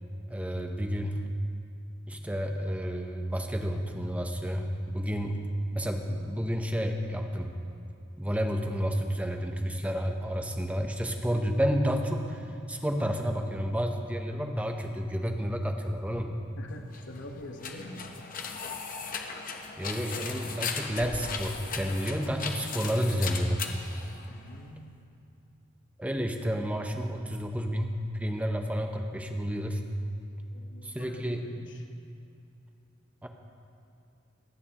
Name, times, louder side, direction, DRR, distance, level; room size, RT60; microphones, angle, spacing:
voice 1, 0.3-1.2 2.1-5.4 5.7-7.5 8.2-16.3 19.8-23.6 26.0-29.8 30.8-31.5 33.2-33.3, equal, 5° right, 4 dB, 0.7 m, -30 dB
voice 2, 16.6-18.1 24.3-25.0 30.5-31.8, left 1 dB, 60° left, 3 dB, 1.1 m, -45 dB
sound 1, 16.8-24.7, left 5 dB, 40° left, 0.8 m, -37 dB
26.5 x 9.2 x 2.9 m, 2.5 s
head